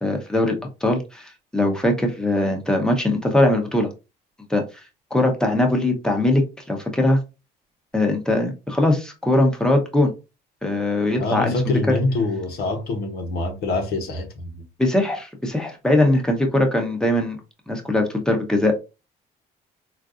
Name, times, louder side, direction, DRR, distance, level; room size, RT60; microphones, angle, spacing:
voice 1, 0.0-3.9 4.5-4.6 5.1-7.2 7.9-10.1 10.6-11.6 14.8-17.4 17.7-18.8, left 1 dB, 5° left, 0.9 m, -21 dB
voice 2, 11.1-14.6, left 3 dB, 70° left, 1.0 m, -25 dB
3.8 x 2.5 x 2.5 m
cardioid pair, 110°, 17 cm